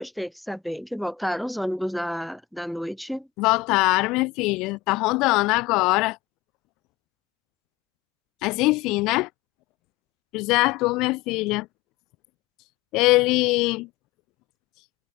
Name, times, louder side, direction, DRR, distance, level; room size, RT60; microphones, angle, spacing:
voice 1, 0.0-3.3, equal, ahead, 0.7 m, -30 dB
voice 2, 3.4-6.2 8.4-9.3 10.3-11.7 12.9-13.9, left 22 dB, 40° left, 0.5 m, -22 dB
hypercardioid pair, 125°, 0 cm